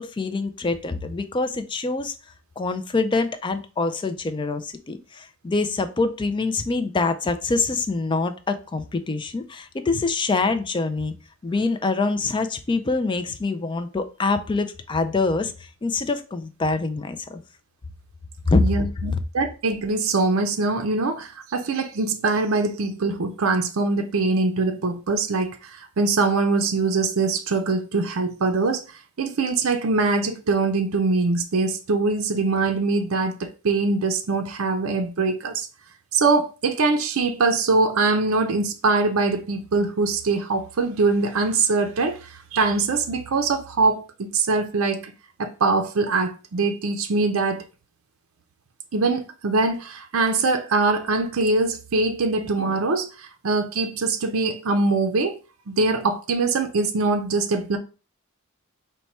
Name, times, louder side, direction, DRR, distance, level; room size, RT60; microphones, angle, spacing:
voice 1, 0.0-2.1 2.6-11.1 11.4-15.5 15.8-17.4 18.5-18.6, left 3 dB, 20° left, 0.3 m, -25 dB
voice 2, 18.6-35.7 36.1-45.1 45.4-47.6 48.9-55.4 55.7-57.8, right 3 dB, 65° right, 0.5 m, -23 dB
4.5 x 2.2 x 4.1 m
head